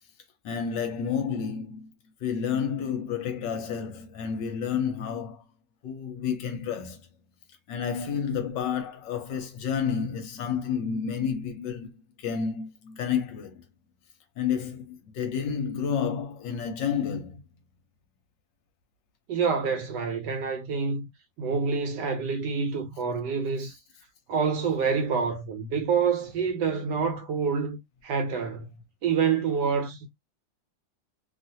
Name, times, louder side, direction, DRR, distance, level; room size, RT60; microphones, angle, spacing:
voice 1, 0.4-1.9 2.2-5.4 5.8-7.0 7.7-13.6 14.4-17.4, left 7 dB, 70° left, 1.2 m, -30 dB
voice 2, 19.3-21.1 21.4-23.8 24.3-28.7 29.0-30.1, right 6 dB, 70° right, 1.1 m, -27 dB
3.1 x 2.4 x 2.6 m
omnidirectional pair, 2.2 m